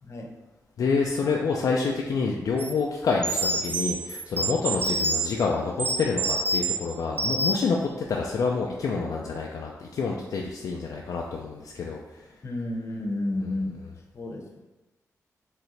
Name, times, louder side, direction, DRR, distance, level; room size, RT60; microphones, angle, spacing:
voice 1, 0.8-12.3 13.4-13.5, left 4 dB, 75° left, -2 dB, 0.5 m, -28 dB
sound 1, 2.6-2.7 3.2-5.3 5.8-6.8 7.2-7.7, right 2 dB, 40° right, 0.6 m, -27 dB
voice 2, 12.4-13.8 14.1-14.6, left 1 dB, 55° left, 0 dB, 0.9 m, -31 dB
4.8 x 3.3 x 3.2 m, 1.1 s
cardioid pair, 80°, 6 cm